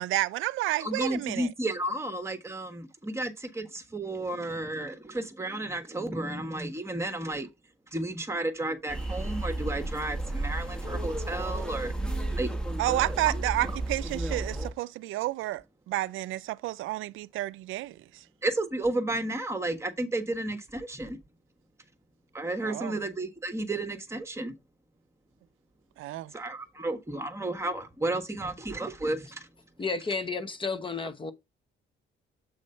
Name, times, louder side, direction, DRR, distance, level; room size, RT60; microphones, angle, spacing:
voice 1, 0.0-1.5 12.8-18.0 22.6-23.0 26.0-26.3, right 17 dB, 85° right, 0.4 m, -30 dB
voice 2, 0.8-7.5 7.9-11.9 12.4-12.5 13.3-13.4 18.4-21.2 22.3-24.5 26.3-29.5, right 2 dB, 15° right, 1.3 m, -32 dB
sound 1, 8.9-14.7, right 2 dB, 5° left, 1.4 m, -32 dB
voice 3, 29.8-31.3, left 4 dB, 25° left, 1.0 m, -32 dB
7.7 x 3.2 x 5.4 m
cardioid pair, 90°, 20 cm